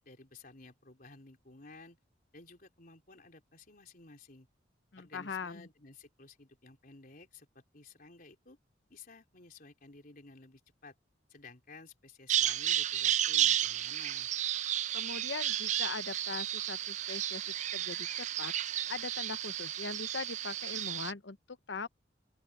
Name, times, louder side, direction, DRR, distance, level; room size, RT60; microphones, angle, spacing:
voice 1, 0.0-2.0 2.3-4.5 5.0-8.6 8.9-11.0 11.3-14.3, left 3 dB, 50° left, 3.9 m, -54 dB
voice 2, 4.9-5.7 14.9-18.5 18.9-21.9, left 4 dB, 75° left, 0.9 m, -41 dB
Bird vocalization bird call bird song, 12.3-21.1, right 11 dB, 40° right, 0.3 m, -32 dB
open air
head